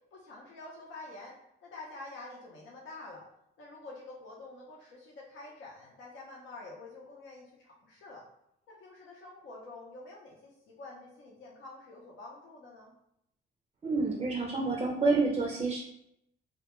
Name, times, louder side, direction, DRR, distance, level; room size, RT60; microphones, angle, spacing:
voice 1, 0.1-1.3 1.6-3.2 3.6-8.2 8.7-12.9, left 2 dB, 75° left, -3 dB, 0.6 m, -48 dB
voice 2, 13.8-15.8, right 3 dB, 30° right, 0 dB, 0.4 m, -28 dB
2.2 x 2.2 x 2.9 m, 0.77 s
cardioid pair, 90°, 20 cm